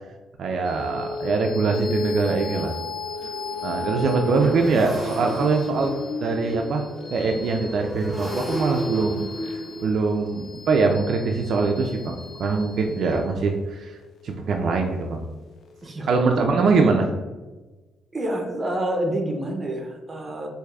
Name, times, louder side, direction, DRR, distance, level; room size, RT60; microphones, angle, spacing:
voice 1, 0.4-2.7 3.6-5.9 6.2-6.9 7.1-14.0 14.2-15.2 16.1-17.1, right 4 dB, 65° right, 2 dB, 0.4 m, -23 dB
sound 1, 0.7-15.4, left 3 dB, 60° left, 0.3 m, -36 dB
Motorcycle, 2.4-13.2, equal, 5° left, 1.0 m, -35 dB
voice 2, 18.1-20.5, right 1 dB, 25° right, 3 dB, 0.7 m, -28 dB
4.5 x 2.6 x 2.3 m, 1.2 s
cardioid pair, 90°, 0 cm